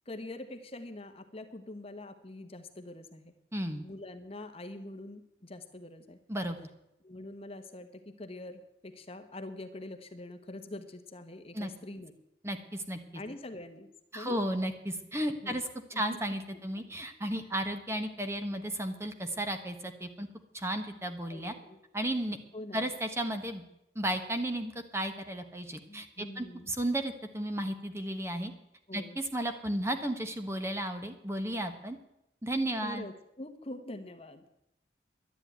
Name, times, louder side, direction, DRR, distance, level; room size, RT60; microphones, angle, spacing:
voice 1, 0.1-3.3 3.8-6.2 7.0-12.1 13.1-14.4 15.4-16.2 16.8-17.1 21.3-21.8 22.5-22.9 25.9-26.7 28.9-29.2 32.8-34.4, left 1 dB, 30° left, 8 dB, 1.1 m, -44 dB
voice 2, 3.5-3.8 6.3-6.6 11.5-11.7 12.4-13.2 14.1-20.3 20.5-21.5 21.9-22.4 22.7-23.6 23.9-28.5 28.9-32.0 32.4-33.0, right 1 dB, 15° right, 7 dB, 1.1 m, -34 dB
11.5 x 9.9 x 9.3 m, 0.85 s
head